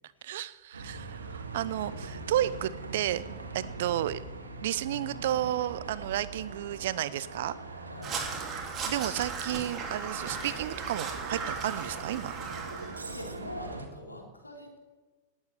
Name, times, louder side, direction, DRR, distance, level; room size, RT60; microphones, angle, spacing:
voice 1, 0.2-3.2 3.5-4.2 4.6-7.5 8.9-12.3, right 12 dB, 60° right, 17 dB, 0.7 m, -32 dB
Bus, 0.7-13.9, right 3 dB, 80° right, 1.9 m, -42 dB
voice 2, 1.8-2.4 7.9-8.2 13.0-14.8, left 1 dB, 90° left, 1 dB, 3.3 m, -44 dB
Crow, 8.0-13.0, right 5 dB, 30° right, 3.2 m, -37 dB
18.5 x 8.0 x 8.9 m, 1.4 s
figure-of-eight pair, 95°, 0 cm